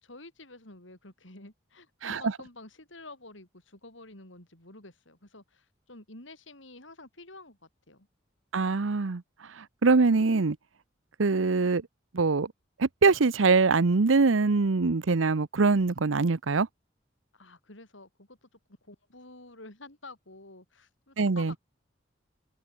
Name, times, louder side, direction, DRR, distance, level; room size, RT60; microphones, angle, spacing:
voice 1, 0.0-8.1 17.3-18.5 18.8-21.6, left 2 dB, 75° left, 6.6 m, -49 dB
voice 2, 8.5-9.2 9.6-10.6 11.2-11.8 12.1-12.5 12.8-16.7 21.2-21.5, right 4 dB, 85° right, 0.8 m, -23 dB
open air
head